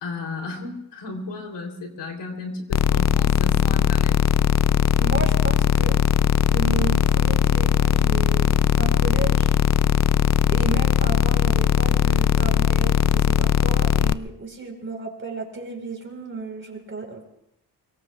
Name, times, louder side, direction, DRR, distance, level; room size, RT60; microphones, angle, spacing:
voice 1, 0.0-4.2, left 3 dB, 75° left, 2 dB, 3.4 m, -34 dB
sound 1, 2.7-14.1, left 9 dB, 40° left, 0.5 m, -19 dB
voice 2, 5.0-6.0 6.5-9.6 10.5-17.2, right 4 dB, 30° right, 2 dB, 4.3 m, -33 dB
24.5 x 22.5 x 2.4 m, 0.81 s
cardioid pair, 90°, 42 cm